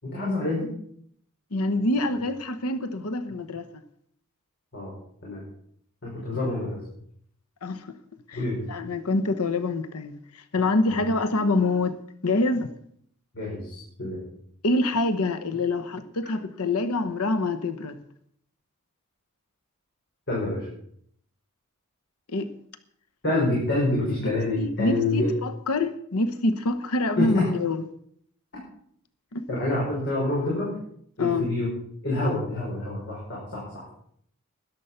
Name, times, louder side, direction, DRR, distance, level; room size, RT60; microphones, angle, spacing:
voice 1, 0.0-0.7 4.7-4.9 5.2-5.4 6.0-6.8 8.3-8.6 10.9-11.0 13.3-14.2 20.3-20.7 23.2-25.3 27.2-27.5 29.5-30.7 31.2-31.7 32.0-33.8, left 2 dB, 55° left, 5.7 m, -27 dB
voice 2, 1.5-3.7 7.6-8.0 8.3-8.4 8.7-11.9 12.2-12.7 14.6-18.0 22.3-22.5 24.2-27.8 29.3-29.4 31.2-31.4, left 2 dB, 75° left, 1.0 m, -26 dB
13.5 x 11.0 x 5.7 m
head